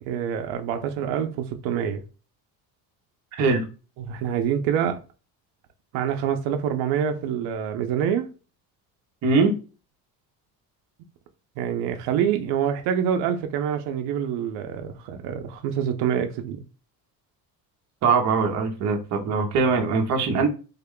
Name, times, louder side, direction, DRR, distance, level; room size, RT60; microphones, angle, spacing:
voice 1, 0.0-2.0 4.0-5.0 5.9-8.3 11.6-16.6, right 8 dB, 90° right, 0.6 m, -26 dB
voice 2, 3.3-3.6 9.2-9.5 18.0-20.5, right 4 dB, 40° right, 0.8 m, -21 dB
3.6 x 2.2 x 3.6 m
cardioid pair, 180°, 41 cm